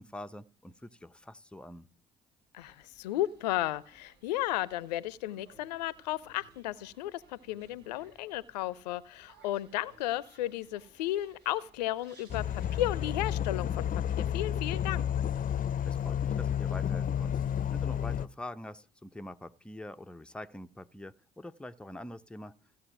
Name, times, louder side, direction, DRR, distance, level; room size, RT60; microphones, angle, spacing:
voice 1, 0.0-1.9 15.8-22.5, left 1 dB, 5° left, 0.7 m, -45 dB
voice 2, 2.5-15.0, left 15 dB, 80° left, 0.6 m, -34 dB
sound 1, 2.6-12.8, right 3 dB, 55° right, 5.9 m, -62 dB
sound 2, 12.3-18.3, left 9 dB, 40° left, 0.7 m, -31 dB
15.5 x 7.7 x 9.1 m
hypercardioid pair, 55°, 21 cm